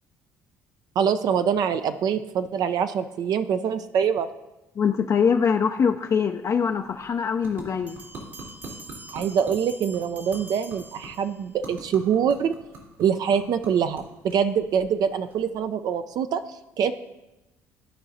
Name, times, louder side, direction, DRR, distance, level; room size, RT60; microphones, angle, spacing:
voice 1, 1.0-4.3 9.1-12.5 13.0-16.4 16.8-16.9, right 7 dB, 55° right, 9 dB, 0.4 m, -24 dB
voice 2, 4.8-8.0, left 6 dB, 40° left, 4 dB, 0.5 m, -23 dB
sound 1, 6.5-15.9, right 2 dB, 85° right, 2.3 m, -46 dB
Bell, 7.9-11.6, right 2 dB, 20° right, 0.7 m, -45 dB
14.0 x 4.8 x 2.6 m, 0.99 s
hypercardioid pair, 60°, 8 cm